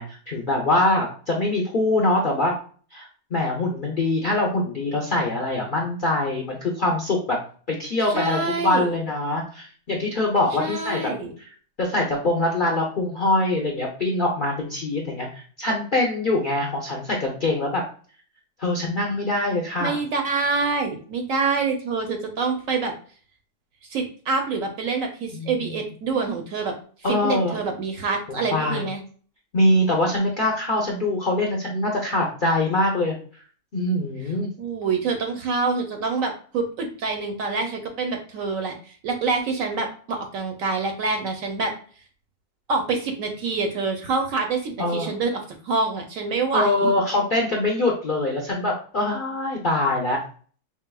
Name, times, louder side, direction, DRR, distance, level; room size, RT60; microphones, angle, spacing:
voice 1, 0.0-2.5 2.9-7.4 7.7-11.1 11.4-11.5 11.8-17.8 18.6-20.0 25.3-25.7 27.0-27.6 28.3-28.8 29.5-33.1 33.7-34.5 44.8-45.2 46.5-50.2, left 2 dB, 50° left, -2 dB, 0.6 m, -23 dB
voice 2, 8.1-8.9 10.6-11.3 19.8-22.9 23.9-26.7 27.1-29.0 34.6-41.7 42.7-46.9, right 4 dB, 65° right, 4 dB, 1.0 m, -26 dB
4.7 x 3.4 x 2.2 m, 0.43 s
omnidirectional pair, 1.7 m